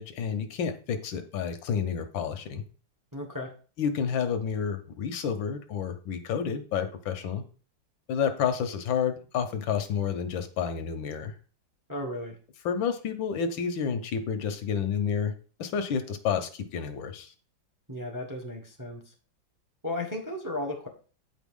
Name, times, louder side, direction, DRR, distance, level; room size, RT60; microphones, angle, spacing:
voice 1, 0.0-2.6 3.8-7.4 8.1-11.3 12.6-15.3 15.6-17.3, left 7 dB, 75° left, 8 dB, 1.6 m, -30 dB
voice 2, 3.1-3.5 11.9-12.4 17.9-19.0 19.8-20.9, left 1 dB, 15° right, 2 dB, 1.0 m, -34 dB
8.9 x 5.2 x 3.7 m, 0.39 s
omnidirectional pair, 2.1 m